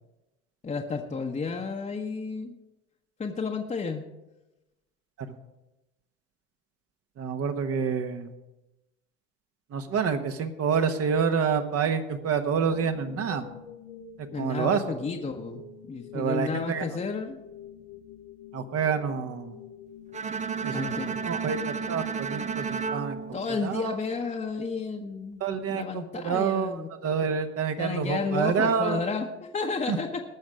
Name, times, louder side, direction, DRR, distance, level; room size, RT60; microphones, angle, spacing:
voice 1, 0.6-2.5 3.2-4.0 14.3-17.4 20.7-21.2 23.3-25.4 25.7-26.9 27.8-30.2, left 4 dB, 20° left, 1 dB, 1.1 m, -32 dB
voice 2, 7.2-8.3 9.7-13.5 14.4-14.8 16.1-16.8 18.5-19.6 20.6-23.2 23.6-24.0 25.4-29.0 29.9-30.0, right 6 dB, 45° right, 7 dB, 1.3 m, -28 dB
sound 1, 12.7-24.7, left 7 dB, 70° left, 1.2 m, -47 dB
Bowed string instrument, 20.1-24.3, right 6 dB, 20° right, 0.5 m, -33 dB
19.0 x 6.4 x 4.9 m, 0.99 s
hypercardioid pair, 65°, 33 cm